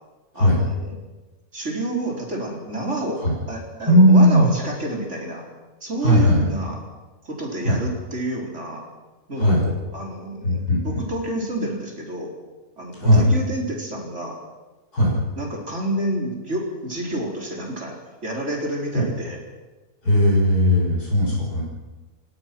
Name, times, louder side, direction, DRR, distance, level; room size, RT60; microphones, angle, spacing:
voice 1, 0.3-1.0 1.5-5.5 5.8-6.8 7.2-8.9 9.3-12.3 12.8-14.4 15.4-19.4, right 1 dB, 50° right, 0 dB, 4.7 m, -29 dB
voice 2, 3.9-4.5 6.0-6.5 7.6-7.8 9.4-9.6 10.4-11.0 13.0-13.2 14.9-15.1 18.9-19.1 20.0-21.6, equal, 85° left, -4 dB, 6.6 m, -17 dB
29.0 x 17.0 x 6.1 m, 1.2 s
omnidirectional pair, 1.6 m